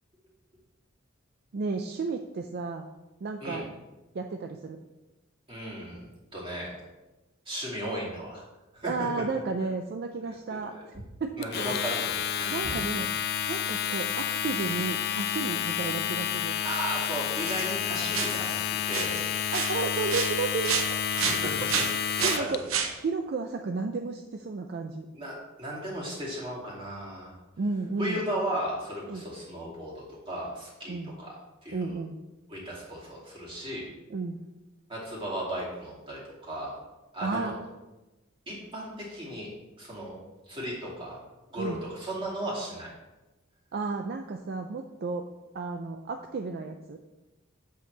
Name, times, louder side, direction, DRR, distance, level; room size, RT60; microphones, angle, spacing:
voice 1, 1.5-2.9 3.2-3.7 4.1-4.8 8.8-11.8 12.5-13.1 13.5-16.5 19.5-21.0 22.2-22.6 23.0-25.1 27.6-28.2 29.1-29.2 30.9-31.1 31.7-32.2 34.1-34.4 37.2-37.7 41.6-41.8 43.7-45.3 45.5-47.0, right 4 dB, 50° right, 5 dB, 0.4 m, -33 dB
voice 2, 5.5-6.1 6.3-6.7 7.5-8.4 8.7-8.9 10.5-10.8 11.4-12.7 16.6-19.2 21.1-21.8 22.2-22.6 25.1-27.3 28.0-31.3 31.6-32.0 32.5-33.9 34.9-36.8 37.1-37.5 38.5-39.5 39.8-40.2 40.5-41.2 41.5-42.9, right 1 dB, 25° right, -6 dB, 2.4 m, -35 dB
Domestic sounds home sounds, 11.4-22.6, left 9 dB, 50° left, 0.3 m, -30 dB
sound 1, 17.4-17.8 18.1-18.6 18.9-19.2 19.5-20.9 21.2-22.9, right 7 dB, 80° right, 0.8 m, -30 dB
7.9 x 6.8 x 3.3 m, 1.1 s
head